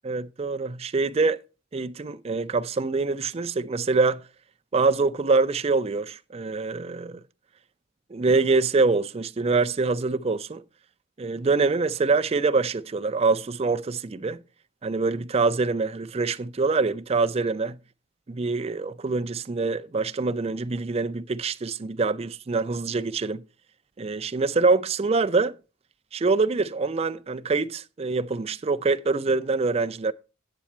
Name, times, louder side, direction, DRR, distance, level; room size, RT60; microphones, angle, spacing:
voice 1, 0.0-1.4 1.7-4.2 4.7-7.2 8.1-10.6 11.2-14.4 14.8-17.8 18.3-23.4 24.0-25.6 26.1-30.1, right 4 dB, 30° right, 0.4 m, -25 dB
8.5 x 8.2 x 4.4 m
head